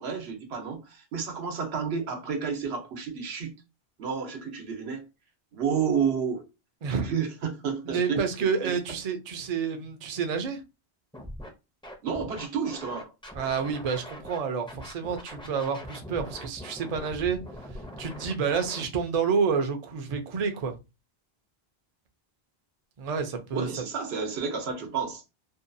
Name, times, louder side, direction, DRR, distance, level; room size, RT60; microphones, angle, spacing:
voice 1, 0.0-3.6 4.0-5.1 5.5-6.4 6.9-8.2 8.6-8.7 12.0-13.1 23.5-25.2, right 6 dB, 85° right, 1.0 m, -30 dB
voice 2, 6.8-7.1 7.9-10.6 13.3-17.4 18.0-20.7 23.0-23.7, right 6 dB, 50° right, 0.5 m, -29 dB
Scratching (performance technique), 11.1-11.5 11.8-14.4 14.7-18.9, equal, 5° left, 0.4 m, -42 dB
2.6 x 2.3 x 2.5 m
omnidirectional pair, 1.0 m